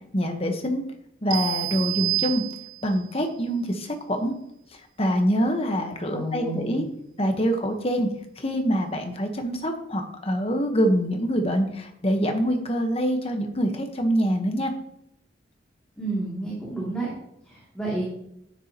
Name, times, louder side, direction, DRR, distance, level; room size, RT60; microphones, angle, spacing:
voice 1, 0.1-0.8 1.2-2.4 2.8-4.3 5.0-6.8 7.2-8.1 8.4-14.7, equal, 30° left, 5 dB, 1.2 m, -25 dB
sound 1, 1.3-3.0, right 26 dB, 75° right, 0.3 m, -28 dB
voice 2, 6.1-6.8 16.0-17.1 17.5-18.0, right 2 dB, 5° left, -7 dB, 2.6 m, -30 dB
10.5 x 9.7 x 3.0 m, 0.79 s
head